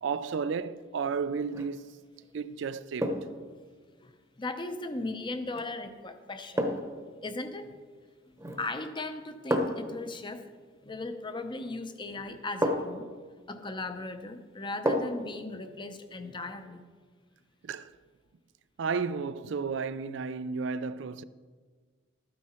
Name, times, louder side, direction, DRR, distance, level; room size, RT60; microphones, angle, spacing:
voice 1, 0.0-1.9 2.3-3.1 17.6-17.9 18.8-21.2, right 5 dB, 65° right, 0.4 m, -33 dB
sound 1, 1.4-1.8 3.0-3.4 5.5-5.7 6.6-7.0 8.4-8.8 9.5-9.9 11.6-11.7 12.6-13.1 14.9-15.3 15.7-15.8, equal, 15° right, 0.9 m, -30 dB
voice 2, 4.4-6.7 7.2-7.8 8.3-10.4 10.8-13.1 13.5-16.8, left 2 dB, 25° left, 0.7 m, -37 dB
13.0 x 9.6 x 4.3 m
head